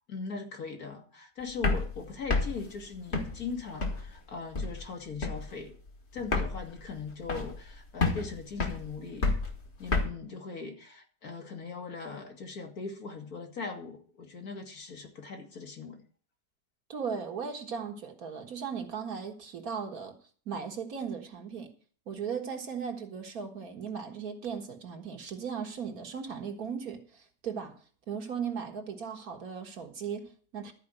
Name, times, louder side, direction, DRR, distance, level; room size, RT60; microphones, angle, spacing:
voice 1, 0.1-5.8 6.1-9.3 9.8-16.0, left 4 dB, 65° left, 2.4 m, -40 dB
sound 1, 1.5-4.2 4.5-4.9 5.2-5.6 5.9-6.0 6.2-7.7 8.0-10.1, left 3 dB, 40° left, 1.9 m, -30 dB
voice 2, 16.9-20.1 20.5-21.7 22.1-27.7 28.1-30.7, right 6 dB, 60° right, 1.9 m, -37 dB
13.0 x 5.0 x 9.0 m
omnidirectional pair, 1.7 m